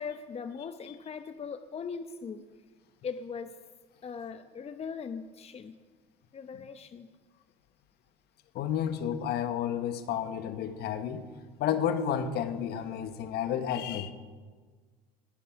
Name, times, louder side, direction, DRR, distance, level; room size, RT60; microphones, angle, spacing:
voice 1, 0.0-2.4 3.0-3.5 4.0-5.8 6.3-7.1, left 6 dB, 35° left, 10 dB, 0.9 m, -39 dB
voice 2, 8.5-11.2 11.6-14.1, left 9 dB, 60° left, 9 dB, 1.4 m, -31 dB
20.5 x 11.5 x 5.1 m, 1.5 s
hypercardioid pair, 65°, 19 cm